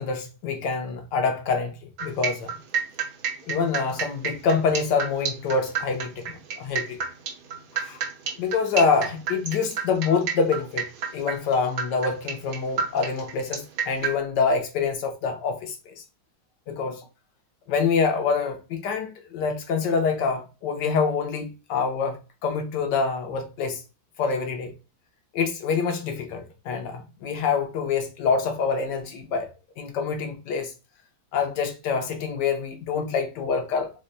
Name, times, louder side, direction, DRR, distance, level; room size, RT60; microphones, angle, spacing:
voice 1, 0.0-1.7 2.0-2.5 3.5-7.0 7.7-8.0 8.4-10.9 11.1-16.0 16.7-17.0 17.7-23.8 24.2-24.7 25.3-29.5 29.8-30.7 31.3-33.9, left 5 dB, 70° left, 1.0 m, -26 dB
sound 1, 2.0-14.2, right 6 dB, 70° right, 1.0 m, -30 dB
3.4 x 2.1 x 3.8 m
omnidirectional pair, 2.3 m